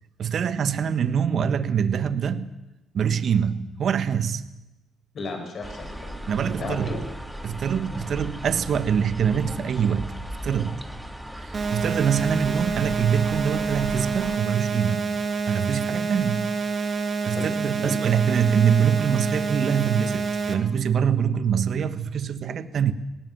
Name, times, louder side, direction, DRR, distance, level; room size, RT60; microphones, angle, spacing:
voice 1, 0.2-2.5 2.9-4.4 6.3-7.0 7.4-10.1 10.4-10.8 11.4-15.0 15.5-16.6 17.2-22.9, right 7 dB, 60° right, 12 dB, 1.3 m, -24 dB
voice 2, 5.1-7.0 17.3-17.5 17.8-17.9, left 3 dB, 55° left, 4 dB, 5.7 m, -34 dB
sound 1, 5.6-14.4, equal, 5° right, 2.2 m, -37 dB
sound 2, 11.5-20.5, right 4 dB, 40° right, 2.5 m, -27 dB
19.0 x 18.5 x 7.5 m, 0.98 s
cardioid pair, 90°, 0 cm